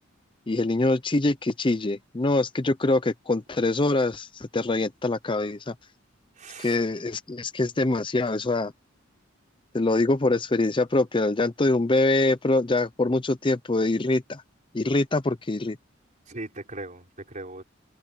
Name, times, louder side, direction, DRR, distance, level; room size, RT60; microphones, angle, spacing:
voice 1, 0.5-5.7 6.6-8.7 9.7-14.4 14.7-15.8, left 2 dB, 25° left, 0.6 m, -24 dB
voice 2, 6.3-6.8 16.3-17.6, right 2 dB, 40° right, 4.9 m, -39 dB
head